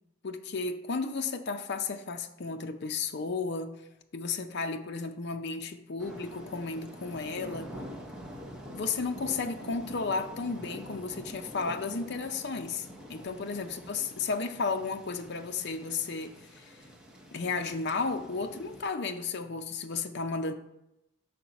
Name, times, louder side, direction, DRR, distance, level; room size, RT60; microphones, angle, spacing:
voice 1, 0.2-3.7 4.1-7.7 8.7-16.8 17.3-20.5, left 4 dB, 50° left, 0.5 m, -33 dB
sound 1, 6.0-18.8, equal, 5° right, 0.8 m, -46 dB
6.9 x 4.3 x 5.3 m
head